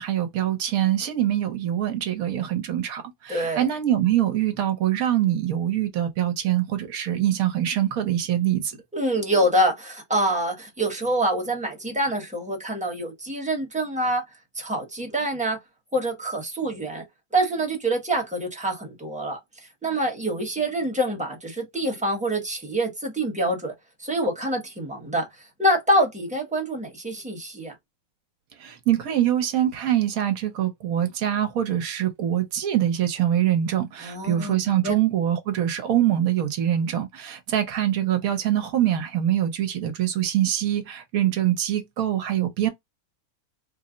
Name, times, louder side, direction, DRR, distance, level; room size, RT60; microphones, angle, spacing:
voice 1, 0.0-8.8 28.6-42.7, right 11 dB, 70° right, 1.2 m, -24 dB
voice 2, 3.3-3.7 8.9-14.2 14.5-15.6 15.9-17.0 17.3-19.4 19.8-23.7 24.0-25.3 25.6-27.7 34.0-34.5 34.8-34.9, right 1 dB, 5° right, 0.9 m, -25 dB
3.3 x 2.0 x 3.8 m
omnidirectional pair, 1.6 m